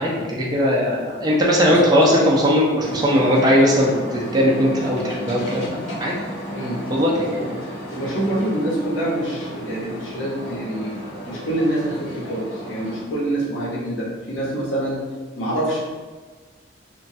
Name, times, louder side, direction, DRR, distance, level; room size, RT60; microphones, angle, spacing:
voice 1, 0.0-6.2 6.9-7.4, equal, 20° right, -4 dB, 0.4 m, -19 dB
sound 1, 2.8-13.0, equal, 45° left, 1.5 m, -34 dB
voice 2, 7.9-11.0 11.3-15.0 15.4-15.8, right 1 dB, 80° left, -5 dB, 0.9 m, -25 dB
3.0 x 2.2 x 2.6 m, 1.4 s
head